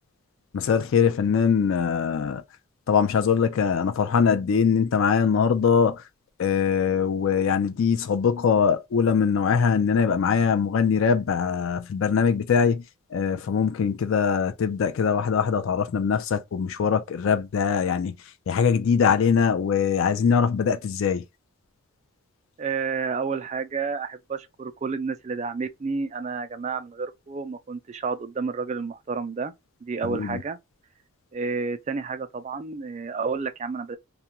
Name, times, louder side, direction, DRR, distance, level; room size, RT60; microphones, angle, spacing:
voice 1, 0.5-2.4 2.9-6.0 6.4-12.8 13.1-18.1 18.5-21.2 30.0-30.4, left 6 dB, 65° left, 0.4 m, -22 dB
voice 2, 22.6-29.5 29.8-30.6 31.3-34.0, right 4 dB, 30° right, 0.3 m, -30 dB
2.4 x 2.1 x 2.7 m
head